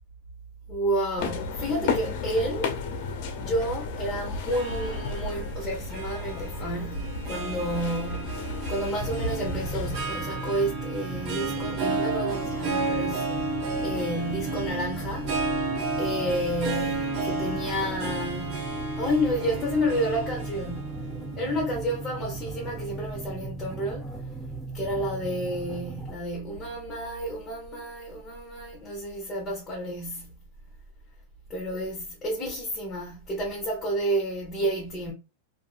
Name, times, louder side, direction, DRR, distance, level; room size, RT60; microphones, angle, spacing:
voice 1, 0.7-2.8 3.4-13.5 13.8-15.4 16.0-24.1 24.7-30.4 31.5-35.1, right 1 dB, 15° left, 1.0 m, -30 dB
sound 1, 1.2-10.0, left 4 dB, 55° left, 0.5 m, -33 dB
Harp, 4.5-22.9, right 3 dB, 40° right, 0.8 m, -33 dB
sound 2, 9.0-26.1, right 3 dB, ahead, 0.4 m, -38 dB
2.6 x 2.5 x 2.4 m
supercardioid pair, 145°, 0 cm